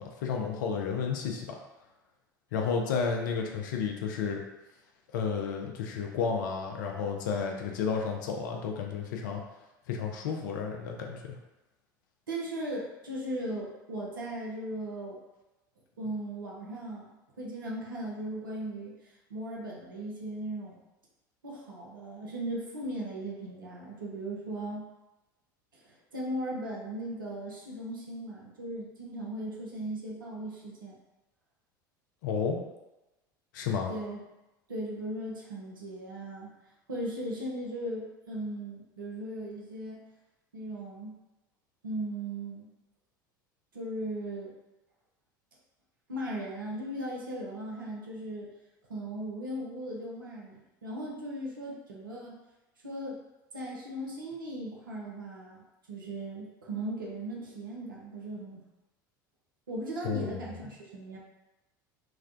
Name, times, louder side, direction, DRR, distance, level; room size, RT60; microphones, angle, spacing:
voice 1, 0.0-1.6 2.5-4.4 5.1-9.4 9.9-11.4 32.2-32.6 33.5-33.9 60.0-60.4, left 6 dB, 70° left, 2 dB, 0.5 m, -32 dB
voice 2, 12.3-15.2 16.0-17.0 17.4-20.8 21.4-24.8 25.7-31.0 33.9-34.2 34.7-36.5 36.9-40.0 40.5-41.2 41.8-42.7 43.7-44.5 46.1-48.5 48.9-52.4 52.8-53.2 53.5-55.6 55.9-58.6 59.7-61.2, right 1 dB, 85° right, -3 dB, 0.7 m, -37 dB
3.2 x 2.2 x 2.5 m, 1.0 s
figure-of-eight pair, 75°, 11 cm